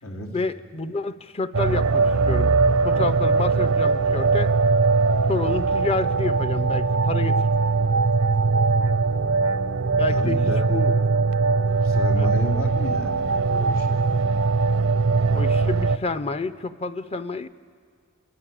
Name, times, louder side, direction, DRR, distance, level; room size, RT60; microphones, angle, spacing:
voice 1, 0.3-2.6 2.8-4.5 5.3-7.4 10.0-10.9 12.2-12.3 15.3-17.5, left 3 dB, 30° left, 13 dB, 0.6 m, -29 dB
sound 1, 1.5-16.0, right 4 dB, 80° right, 0.7 m, -21 dB
voice 2, 10.1-10.7 11.8-14.4, left 1 dB, 85° left, 2 dB, 3.4 m, -33 dB
27.5 x 22.0 x 8.6 m, 2.1 s
head